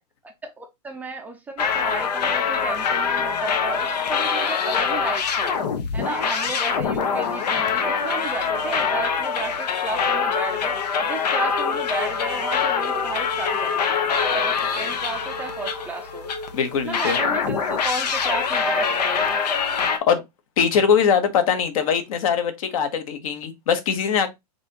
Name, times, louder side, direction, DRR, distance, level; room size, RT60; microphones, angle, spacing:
voice 1, 0.4-5.5 5.9-10.8 11.0-14.0 14.3-16.3 16.8-19.4, right 3 dB, 10° right, 0.5 m, -33 dB
sound 1, 1.6-16.5 16.9-20.0, left 6 dB, 85° left, 1.2 m, -24 dB
sound 2, 9.1-17.5, left 4 dB, 30° left, 1.6 m, -38 dB
voice 2, 16.5-17.2 19.8-20.2 20.6-24.3, left 7 dB, 60° left, 1.3 m, -22 dB
5.8 x 3.0 x 2.9 m
supercardioid pair, 155°, 20 cm